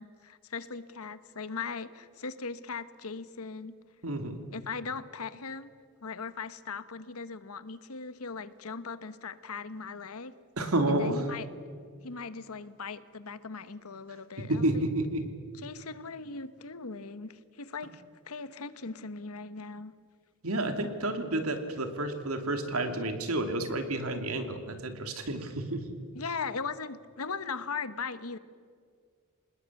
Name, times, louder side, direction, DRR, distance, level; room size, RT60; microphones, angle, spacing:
voice 1, 0.0-3.7 4.5-5.7 6.0-10.3 10.9-11.5 12.0-14.9 15.6-19.9 26.1-28.4, left 4 dB, 80° left, 13 dB, 1.1 m, -39 dB
voice 2, 4.0-4.4 10.6-11.3 14.4-15.2 20.4-26.0, right 1 dB, 75° right, 6 dB, 2.7 m, -30 dB
26.5 x 20.0 x 8.4 m, 2.1 s
head